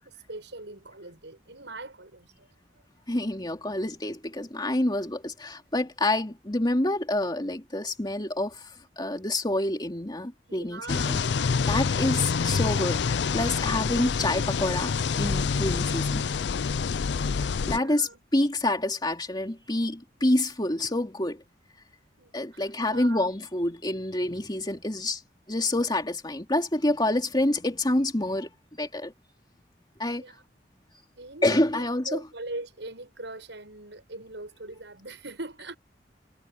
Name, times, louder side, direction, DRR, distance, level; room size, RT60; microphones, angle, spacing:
voice 1, 0.0-2.5 10.5-11.7 17.7-18.2 22.2-23.3 30.2-30.4 31.2-35.8, right 2 dB, 85° right, 7.2 m, -42 dB
voice 2, 3.1-11.2 11.7-14.9 15.2-16.2 17.7-21.4 22.3-25.2 25.5-29.1 30.0-30.2 31.4-32.2, left 1 dB, 25° left, 2.8 m, -27 dB
sound 1, 10.9-17.8, left 5 dB, 75° left, 0.5 m, -27 dB
head